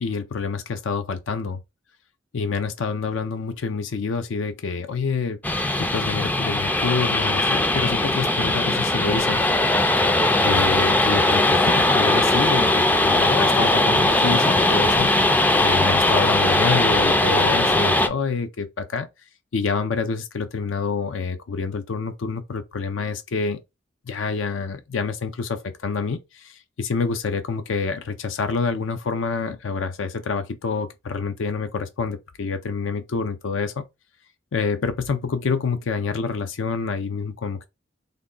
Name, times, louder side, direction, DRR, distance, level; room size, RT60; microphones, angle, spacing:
voice 1, 0.0-1.6 2.3-5.4 5.7-9.4 10.4-15.1 15.6-19.1 19.5-23.6 24.1-33.8 34.5-37.7, left 4 dB, 90° left, 0.5 m, -27 dB
sound 1, 5.4-18.1, left 2 dB, 10° left, 0.3 m, -19 dB
3.5 x 2.2 x 3.7 m
head